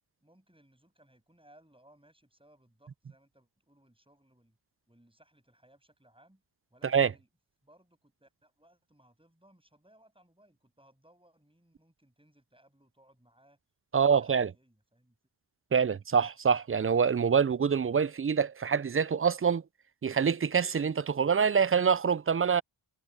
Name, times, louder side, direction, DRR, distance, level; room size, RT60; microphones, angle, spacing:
voice 1, 0.2-4.6 4.9-6.4 6.7-7.3 7.6-13.6 13.9-15.2, right 1 dB, 10° right, 7.2 m, -63 dB
voice 2, 13.9-14.5 15.7-19.6 20.0-22.6, right 6 dB, 30° right, 0.3 m, -25 dB
wide cardioid pair, 60°, 50 cm